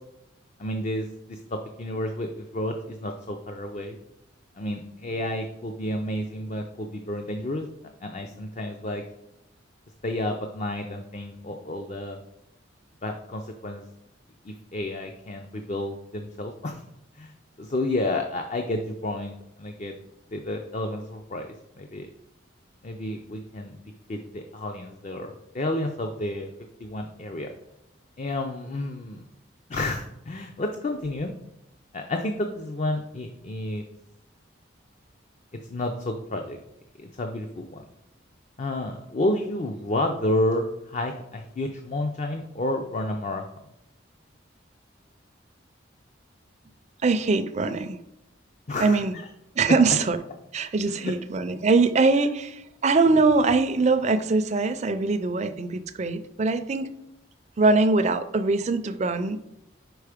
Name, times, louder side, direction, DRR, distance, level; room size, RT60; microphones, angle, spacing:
voice 1, 0.6-4.0 4.6-7.7 8.0-9.0 10.0-12.2 13.0-13.8 14.5-16.8 17.2-17.3 17.6-19.9 20.3-22.1 22.8-23.8 24.1-26.5 26.8-27.5 28.2-29.2 29.7-31.4 31.9-33.8 35.7-36.6 37.0-37.8 38.6-43.4 48.7-49.0 50.9-51.2, left 1 dB, 35° left, 4 dB, 0.5 m, -30 dB
voice 2, 47.0-48.0 48.8-49.1 49.6-50.2 50.5-56.9 57.6-59.4, right 3 dB, 35° right, 10 dB, 0.4 m, -22 dB
5.1 x 4.7 x 4.9 m, 0.87 s
head